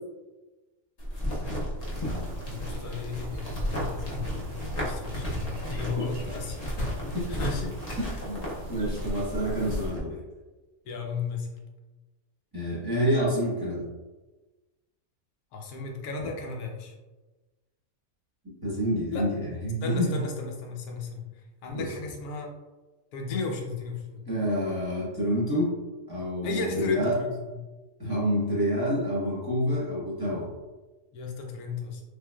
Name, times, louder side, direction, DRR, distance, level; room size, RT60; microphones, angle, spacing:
sound 1, 1.0-10.0, equal, 35° left, 0.6 m, -33 dB
sound 2, 1.8-9.9, right 1 dB, 65° right, 0.8 m, -43 dB
voice 1, 2.4-6.6 7.3-8.2 10.8-11.5 15.5-16.9 19.1-19.3 19.8-22.5 23.1-24.4 26.4-27.6 31.1-32.0, left 4 dB, 85° left, 1 dB, 1.1 m, -35 dB
voice 2, 8.0-10.2 12.5-13.9 18.6-20.2 21.7-21.9 24.3-25.7 26.1-27.2 28.0-30.5, equal, 20° right, -7 dB, 0.9 m, -28 dB
3.5 x 3.2 x 2.2 m, 1.2 s
omnidirectional pair, 1.5 m